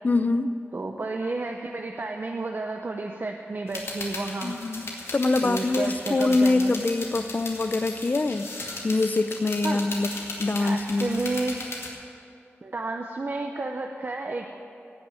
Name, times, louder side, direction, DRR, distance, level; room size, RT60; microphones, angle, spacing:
voice 1, 0.0-0.5 4.4-8.5 8.8-10.1 10.4-11.2, left 3 dB, 40° left, 11 dB, 0.6 m, -24 dB
voice 2, 0.7-4.6 5.4-6.7 9.6-9.8 10.6-11.6 12.6-14.4, right 3 dB, 45° right, 2 dB, 0.8 m, -31 dB
sound 1, 3.7-11.9, left 2 dB, 75° left, 2.2 m, -37 dB
17.0 x 6.1 x 9.0 m, 2.5 s
wide cardioid pair, 85°, 5 cm